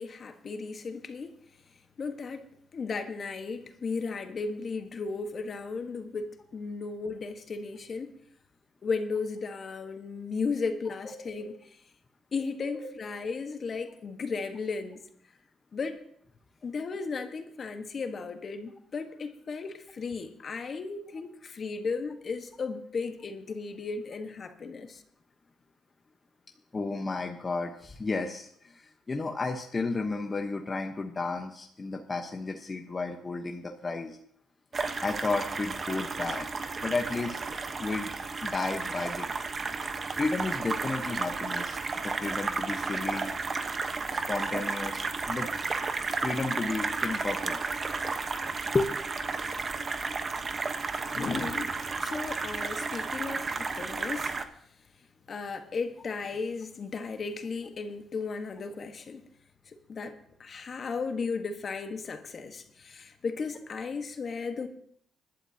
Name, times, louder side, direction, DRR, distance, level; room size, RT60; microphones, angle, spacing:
voice 1, 0.0-1.3 2.0-2.5 2.7-8.1 8.8-11.6 12.3-15.0 15.7-16.0 16.6-25.0 51.1-54.3 55.3-59.2 59.7-64.7, left 4 dB, 45° left, 1.4 m, -35 dB
voice 2, 11.0-11.4 12.7-13.2 26.7-34.2 34.7-36.5 36.8-37.4 37.8-38.1 38.4-39.3 40.1-43.3 44.1-45.5 46.1-47.6 48.7-48.9, left 3 dB, 30° left, 1.1 m, -33 dB
sound 1, 34.7-54.4, right 4 dB, 35° right, 1.1 m, -33 dB
20.5 x 12.0 x 2.9 m
cardioid pair, 90°, 0 cm